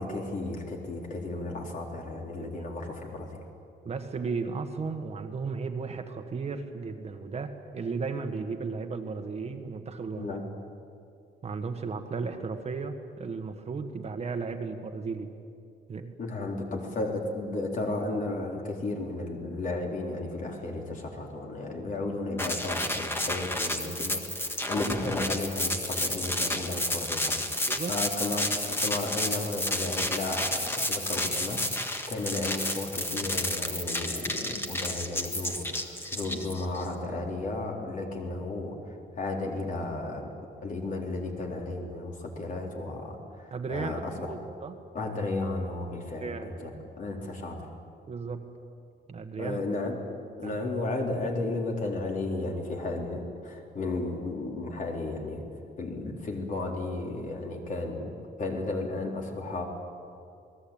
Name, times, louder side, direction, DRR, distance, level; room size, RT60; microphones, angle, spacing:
voice 1, 0.0-3.4 10.2-10.4 16.2-31.6 32.1-40.3 40.6-44.3 44.9-47.7 49.4-50.0 50.4-55.5 55.8-59.6, left 2 dB, 45° left, 1 dB, 3.9 m, -34 dB
voice 2, 3.8-10.4 11.4-15.3 15.9-16.1 27.7-27.9 43.5-44.8 46.2-46.7 48.1-48.4 49.1-49.6 50.4-50.6, right 4 dB, 35° right, 5 dB, 1.6 m, -35 dB
sound 1, 22.4-36.8, left 1 dB, 10° left, 1.7 m, -31 dB
28.5 x 20.5 x 8.9 m, 2.4 s
cardioid pair, 170°, 19 cm